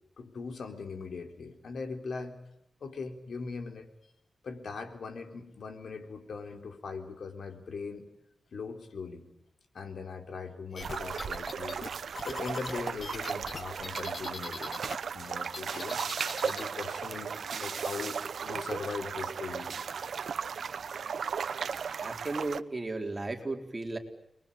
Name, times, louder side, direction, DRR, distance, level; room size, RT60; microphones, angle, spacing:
voice 1, 0.2-2.4 2.8-4.1 4.4-8.1 8.5-9.3 9.7-14.9 15.1-16.0 16.4-19.7, left 4 dB, 75° left, 6 dB, 4.0 m, -40 dB
sound 1, 10.7-15.0 15.2-16.7, left 4 dB, 45° left, 1.6 m, -41 dB
sound 2, 10.8-22.6, right 6 dB, 75° right, 1.1 m, -36 dB
voice 2, 22.0-24.0, right 2 dB, 25° right, 3 dB, 4.3 m, -35 dB
30.0 x 22.0 x 8.7 m, 0.79 s
wide cardioid pair, 110°, 0 cm